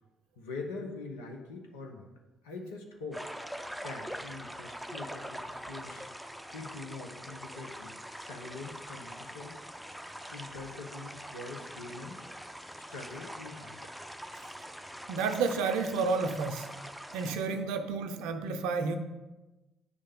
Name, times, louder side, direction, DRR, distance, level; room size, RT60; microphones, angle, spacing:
voice 1, 0.4-2.1 2.4-3.3 3.8-6.1 6.5-9.6 10.3-12.2 12.8-13.9, left 3 dB, 85° left, 1 dB, 0.8 m, -43 dB
sound 1, 3.1-17.4, equal, ahead, 0.5 m, -43 dB
voice 2, 15.1-16.7 17.1-19.0, right 4 dB, 75° right, 8 dB, 0.5 m, -31 dB
9.6 x 3.3 x 3.5 m, 1.1 s
hypercardioid pair, 50°, 0 cm